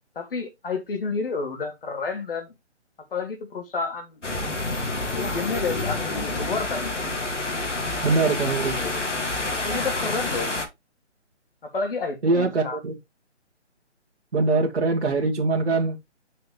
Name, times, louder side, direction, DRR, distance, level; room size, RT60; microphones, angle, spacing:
voice 1, 0.1-2.5 3.1-4.2 5.1-7.0 9.6-10.5 11.6-12.8, left 4 dB, 50° left, 2.9 m, -30 dB
sound 1, 4.2-10.7, left 2 dB, 80° left, 2.6 m, -28 dB
voice 2, 8.0-8.8 12.2-13.0 14.3-16.1, right 3 dB, 65° right, 1.8 m, -23 dB
6.6 x 5.8 x 3.4 m
figure-of-eight pair, 150°, 36 cm